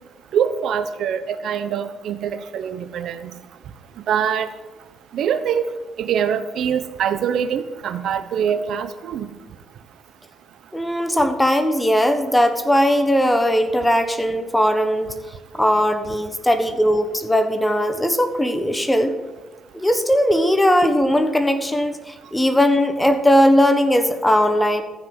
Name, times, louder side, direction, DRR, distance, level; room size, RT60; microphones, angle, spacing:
voice 1, 0.3-3.3 4.1-4.5 5.1-5.7 6.0-9.3, right 8 dB, 75° right, 11 dB, 0.9 m, -24 dB
voice 2, 10.7-15.1 15.5-19.2 19.7-24.8, equal, 10° left, 8 dB, 1.2 m, -18 dB
14.0 x 6.1 x 7.8 m, 1.2 s
cardioid pair, 90°, 0 cm